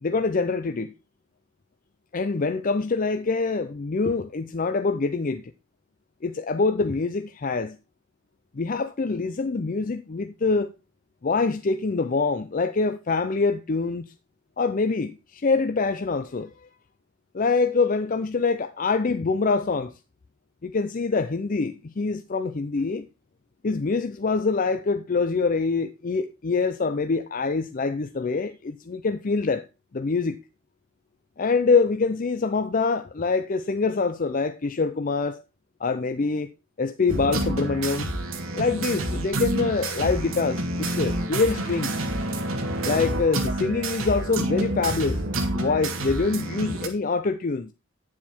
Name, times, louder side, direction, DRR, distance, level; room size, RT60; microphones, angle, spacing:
voice 1, 0.0-0.9 2.1-5.4 6.2-7.8 8.5-10.7 11.2-14.1 14.6-16.7 17.3-19.9 20.6-23.1 23.6-29.7 29.9-30.4 31.4-35.4 35.8-36.5 36.8-38.1 38.5-42.0 42.8-45.2 45.5-47.7, left 4 dB, 40° left, 0.5 m, -25 dB
sound 1, 37.1-46.9, right 1 dB, 75° right, 1.9 m, -28 dB
9.7 x 7.2 x 4.3 m
head